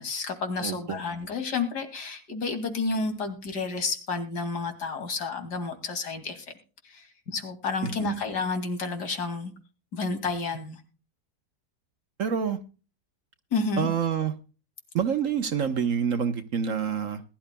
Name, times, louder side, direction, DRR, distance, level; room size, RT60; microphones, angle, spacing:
voice 1, 0.0-6.4 6.8-9.5 9.9-10.8 13.5-13.9, left 4 dB, 70° left, 3.0 m, -30 dB
voice 2, 0.6-1.0 7.8-8.2 12.2-12.6 13.8-14.3 14.9-17.2, right 7 dB, 55° right, 1.2 m, -27 dB
20.5 x 12.0 x 2.2 m
omnidirectional pair, 1.8 m